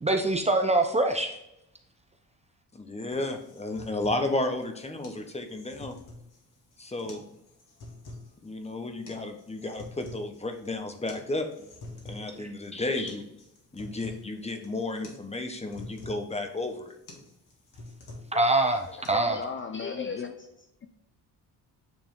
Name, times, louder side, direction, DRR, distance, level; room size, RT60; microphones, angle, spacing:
voice 1, 0.0-1.3 12.3-12.5 18.3-19.4, right 2 dB, 15° right, 4 dB, 0.7 m, -24 dB
voice 2, 2.7-5.9 6.8-7.2 8.4-11.5 12.1-13.2 13.7-17.0, left 2 dB, 15° left, 6 dB, 1.0 m, -33 dB
sound 1, 3.1-19.1, left 2 dB, 55° left, 2.0 m, -47 dB
voice 3, 19.3-20.9, left 5 dB, 30° left, 6 dB, 0.6 m, -36 dB
9.1 x 3.4 x 3.6 m, 0.83 s
cardioid pair, 95°, 38 cm